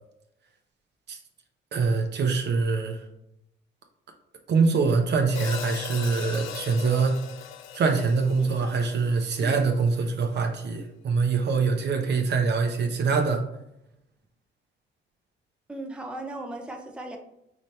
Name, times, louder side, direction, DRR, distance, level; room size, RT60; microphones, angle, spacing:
voice 1, 1.7-3.0 4.5-7.2 7.7-13.4, right 4 dB, 60° right, 4 dB, 0.8 m, -24 dB
Hi-hat, 5.3-9.6, left 9 dB, 85° left, 0.4 m, -39 dB
voice 2, 8.4-9.1 9.4-9.6 15.7-17.2, right 2 dB, 5° right, 3 dB, 0.6 m, -38 dB
5.0 x 2.9 x 3.2 m, 0.82 s
cardioid pair, 90°, 20 cm